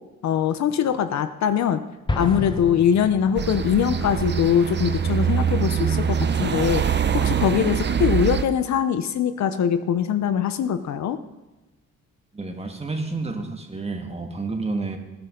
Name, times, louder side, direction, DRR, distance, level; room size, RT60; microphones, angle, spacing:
voice 1, 0.2-1.8 2.2-11.2, left 8 dB, 65° left, 10 dB, 0.9 m, -22 dB
Explosion, 2.1-3.9, left 2 dB, 15° left, 1.2 m, -30 dB
sound 1, 3.4-8.4, right 7 dB, 35° right, 0.8 m, -23 dB
voice 2, 12.3-15.0, right 3 dB, 20° right, 3 dB, 2.0 m, -30 dB
18.0 x 10.5 x 3.9 m, 1.1 s
cardioid pair, 90°, 30 cm